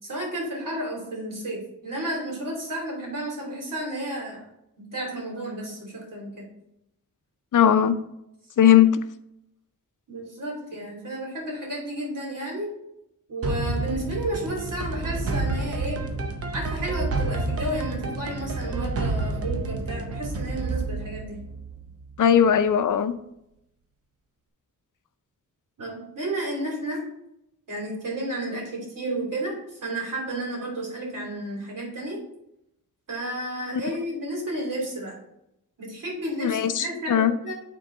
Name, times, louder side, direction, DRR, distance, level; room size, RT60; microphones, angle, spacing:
voice 1, 0.0-4.4 4.8-6.4 10.1-12.7 13.3-16.0 16.5-21.4 25.8-27.0 27.7-32.2 33.1-35.2 35.8-37.5, right 1 dB, 70° right, -2 dB, 2.9 m, -32 dB
voice 2, 7.5-8.0 8.6-9.0 22.2-23.1 36.4-37.3, left 9 dB, 65° left, 11 dB, 0.5 m, -19 dB
sound 1, 13.4-22.3, right 3 dB, 45° right, 0.8 m, -29 dB
9.0 x 3.8 x 3.8 m, 0.81 s
wide cardioid pair, 155°, 34 cm